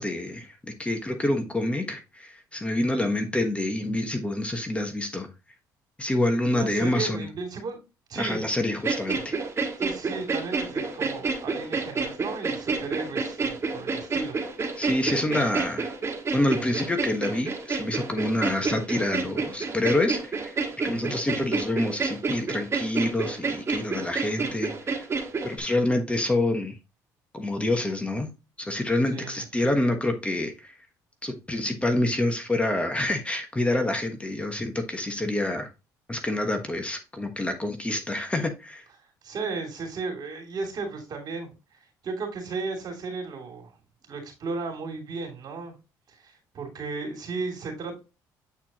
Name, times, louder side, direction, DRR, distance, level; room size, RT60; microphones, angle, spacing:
voice 1, 0.0-5.3 6.0-7.3 8.2-9.4 14.8-15.9 16.3-20.6 20.8-25.1 25.4-26.8 27.3-28.3 28.6-30.7 31.2-35.7 36.1-38.8, left 1 dB, 15° left, 1.2 m, -27 dB
voice 2, 6.5-7.8 8.1-8.5 9.8-14.4 20.9-21.2 29.1-29.4 39.2-41.5 42.0-43.7 44.0-45.7 46.1-48.0, right 4 dB, 55° right, 2.9 m, -35 dB
sound 1, 8.8-25.6, right 4 dB, 35° right, 1.7 m, -29 dB
8.3 x 4.4 x 2.9 m
supercardioid pair, 85°, 8 cm